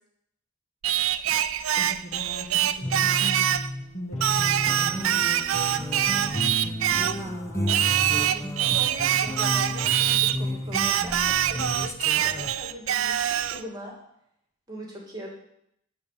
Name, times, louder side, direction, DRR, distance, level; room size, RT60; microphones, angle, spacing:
Singing, 0.8-3.7 4.2-7.2 7.7-10.4 10.7-13.6, right 11 dB, 75° right, 0.4 m, -24 dB
voice 1, 1.8-3.5 3.9-5.0, equal, 35° left, 0 dB, 1.7 m, -39 dB
sound 1, 2.8-12.5, left 1 dB, 15° left, 0.7 m, -32 dB
voice 2, 7.2-11.9 12.2-14.0 14.7-15.3, equal, 20° right, -1 dB, 2.4 m, -41 dB
12.0 x 4.4 x 6.9 m, 0.76 s
head